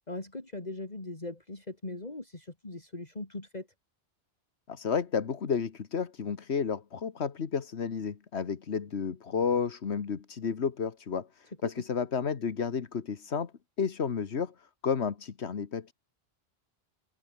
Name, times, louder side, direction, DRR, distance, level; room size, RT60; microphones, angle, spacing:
voice 1, 0.0-3.7 11.6-11.7, left 2 dB, 40° left, 3.2 m, -40 dB
voice 2, 4.7-13.5 13.8-15.9, left 6 dB, 90° left, 1.6 m, -32 dB
omnidirectional pair, 1.1 m